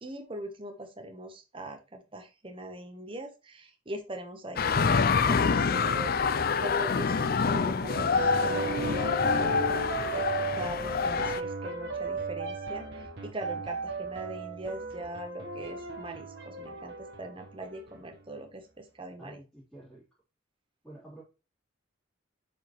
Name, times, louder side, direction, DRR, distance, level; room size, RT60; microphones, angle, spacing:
voice 1, 0.0-9.1 9.4-19.4, right 1 dB, 25° right, 1.1 m, -41 dB
sound 1, 4.6-11.4, left 5 dB, 45° left, 0.5 m, -26 dB
sound 2, 7.9-18.1, right 3 dB, 55° right, 1.5 m, -35 dB
voice 2, 19.1-20.0 20.8-21.2, right 1 dB, 5° left, 3.3 m, -49 dB
7.5 x 5.3 x 3.1 m
head